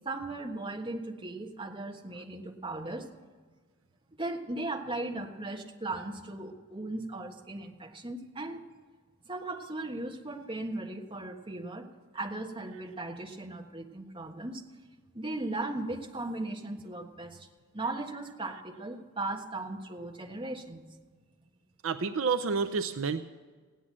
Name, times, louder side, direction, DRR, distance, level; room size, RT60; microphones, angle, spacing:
voice 1, 0.0-3.1 4.2-8.6 9.2-11.9 12.1-14.6 15.1-17.5 17.7-20.8, right 2 dB, 25° right, 1 dB, 1.4 m, -37 dB
voice 2, 21.8-23.2, right 5 dB, 65° right, 7 dB, 0.6 m, -29 dB
16.0 x 10.0 x 7.4 m, 1.5 s
head